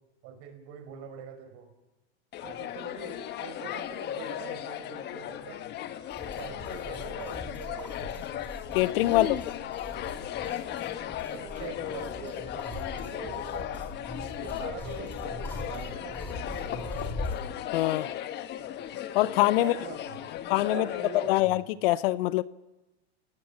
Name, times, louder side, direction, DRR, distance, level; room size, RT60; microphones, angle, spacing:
voice 1, 0.2-1.7 2.4-5.6 6.2-8.1 9.1-9.3 11.3-13.8 14.4-17.1 19.6-20.2 20.7-21.6, right 7 dB, 45° right, 5.7 m, -44 dB
sound 1, 2.3-21.4, left 11 dB, 30° left, 1.2 m, -36 dB
sound 2, 6.1-17.5, left 1 dB, 5° left, 4.7 m, -41 dB
voice 2, 8.7-9.4 17.7-18.1 19.1-19.7 20.5-22.4, left 16 dB, 60° left, 0.8 m, -24 dB
29.5 x 18.5 x 7.5 m
hypercardioid pair, 120°, 33 cm